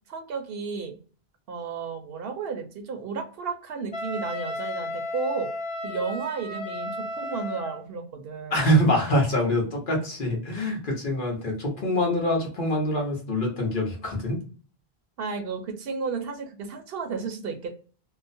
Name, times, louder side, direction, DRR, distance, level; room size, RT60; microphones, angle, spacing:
voice 1, 0.1-0.9 1.5-5.5 5.8-8.6 15.2-17.7, right 5 dB, 70° right, 5 dB, 0.8 m, -33 dB
Wind instrument woodwind instrument, 3.9-7.8, left 1 dB, 40° left, 1.4 m, -34 dB
voice 2, 8.5-14.4, equal, 55° left, -1 dB, 1.1 m, -25 dB
2.9 x 2.0 x 2.5 m, 0.40 s
omnidirectional pair, 1.1 m